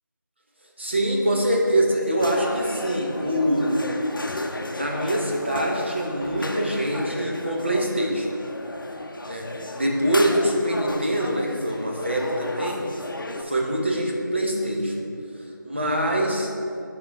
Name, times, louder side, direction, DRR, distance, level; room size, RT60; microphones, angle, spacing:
voice 1, 0.8-3.9 4.7-8.3 9.2-13.1 13.4-15.0 15.3-16.5, right 1 dB, 35° right, -1 dB, 0.7 m, -24 dB
sound 1, 2.2-13.4, left 2 dB, 80° left, 0.6 m, -34 dB
6.2 x 3.7 x 4.5 m, 2.5 s
figure-of-eight pair, 175°, 11 cm